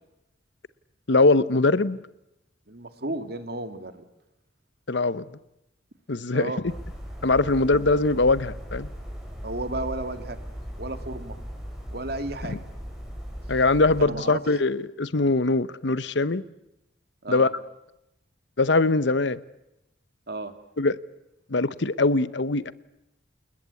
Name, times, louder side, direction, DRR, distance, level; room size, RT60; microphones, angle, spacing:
voice 1, 1.1-2.0 4.9-5.3 6.1-6.5 7.2-8.9 12.5-12.6 13.5-16.4 17.3-17.5 18.6-19.4 20.8-21.0 21.5-22.7, left 3 dB, 65° left, 0.9 m, -22 dB
voice 2, 2.7-4.0 6.3-6.6 7.7-7.8 9.4-10.4 10.8-11.4 11.9-12.6 14.0-14.4 17.2-17.5 20.3-20.5, right 2 dB, 55° right, 2.3 m, -33 dB
sound 1, 6.6-14.0, equal, ahead, 6.1 m, -38 dB
29.0 x 20.5 x 8.4 m
head